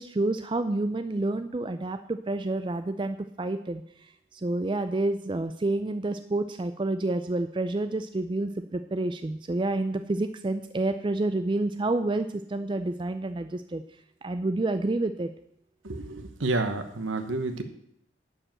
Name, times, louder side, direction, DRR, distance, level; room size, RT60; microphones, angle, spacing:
voice 1, 0.0-3.8 4.3-13.8 14.2-15.3, right 2 dB, 25° right, 9 dB, 0.4 m, -29 dB
voice 2, 15.8-17.6, right 2 dB, 90° right, 8 dB, 1.1 m, -30 dB
11.0 x 5.2 x 7.5 m, 0.71 s
head